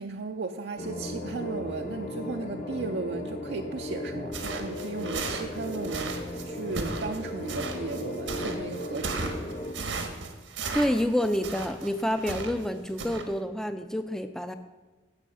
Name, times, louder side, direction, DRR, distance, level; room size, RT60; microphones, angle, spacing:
voice 1, 0.0-9.4, right 4 dB, 60° right, 4 dB, 0.5 m, -36 dB
sound 1, 0.8-9.7, left 1 dB, 40° left, 0.9 m, -36 dB
sound 2, 4.3-12.7 13.0-13.2, right 3 dB, 85° right, 1.3 m, -35 dB
voice 2, 10.7-14.5, equal, 5° left, 8 dB, 0.4 m, -28 dB
14.5 x 5.5 x 5.5 m, 1.2 s
head